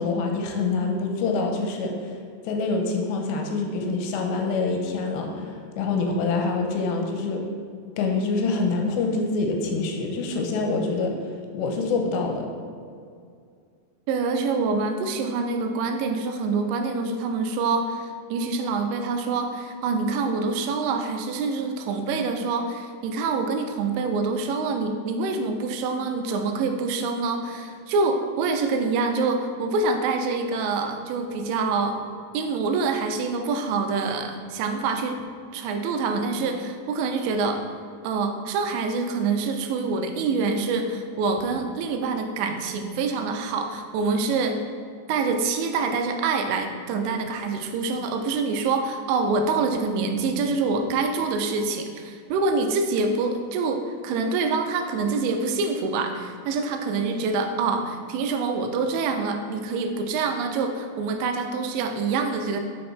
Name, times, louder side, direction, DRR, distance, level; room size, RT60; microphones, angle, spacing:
voice 1, 0.0-2.1 2.5-7.4 8.0-12.5, left 3 dB, 85° left, 2 dB, 2.9 m, -26 dB
voice 2, 14.1-32.0 32.3-35.2 35.5-37.6 38.0-44.6 45.1-62.6, right 4 dB, 85° right, 5 dB, 2.9 m, -26 dB
6.4 x 5.4 x 4.4 m, 2.3 s
omnidirectional pair, 5.1 m